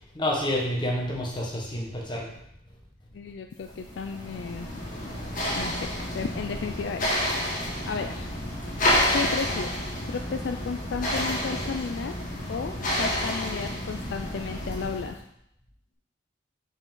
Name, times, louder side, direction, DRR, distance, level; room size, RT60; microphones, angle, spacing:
voice 1, 0.1-2.3, left 1 dB, 25° left, -2 dB, 1.2 m, -28 dB
voice 2, 3.1-4.8 5.5-7.1 7.4-8.4 8.7-9.8 10.1-12.2 12.5-15.2, left 5 dB, 60° left, 6 dB, 0.3 m, -34 dB
sound 1, 3.7-15.2, left 1 dB, 45° left, 1.7 m, -29 dB
5.4 x 5.0 x 3.8 m, 0.77 s
head